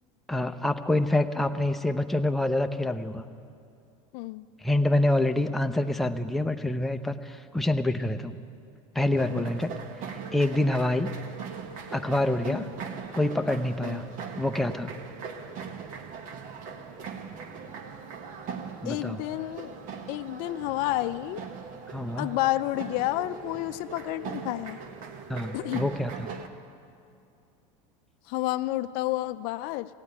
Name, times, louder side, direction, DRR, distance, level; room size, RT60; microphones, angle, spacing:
voice 1, 0.3-3.3 4.6-8.4 8.9-9.7 10.3-11.2 11.9-12.7 13.1-14.0 14.4-14.9 18.8-19.2 21.9-22.3 25.3-26.3, left 1 dB, ahead, 6 dB, 0.5 m, -26 dB
voice 2, 4.1-4.4 9.3-9.5 12.4-12.7 13.8-14.0 18.8-19.7 20.1-21.4 22.2-24.8 25.5-25.9 28.3-29.9, left 16 dB, 60° left, 13 dB, 0.4 m, -30 dB
sound 1, 9.1-26.5, right 5 dB, 50° right, 1.2 m, -40 dB
16.0 x 8.6 x 9.7 m, 2.6 s
supercardioid pair, 115°, 17 cm